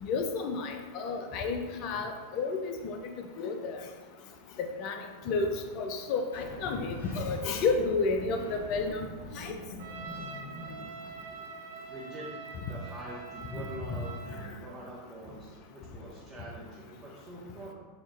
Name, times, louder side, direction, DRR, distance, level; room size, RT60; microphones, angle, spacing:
voice 1, 0.0-3.0 3.4-3.8 4.6-9.1 9.4-9.5 13.5-13.6 13.9-14.0, left 4 dB, 40° left, 5 dB, 0.4 m, -31 dB
sound 1, 6.3-11.5, left 1 dB, 70° left, 0.8 m, -45 dB
Trumpet, 9.8-14.5, right 5 dB, 60° right, 0.6 m, -44 dB
voice 2, 11.9-12.3 12.7-17.7, right 1 dB, 15° right, -7 dB, 0.8 m, -44 dB
5.8 x 2.4 x 2.5 m, 1.4 s
figure-of-eight pair, 90°, 0 cm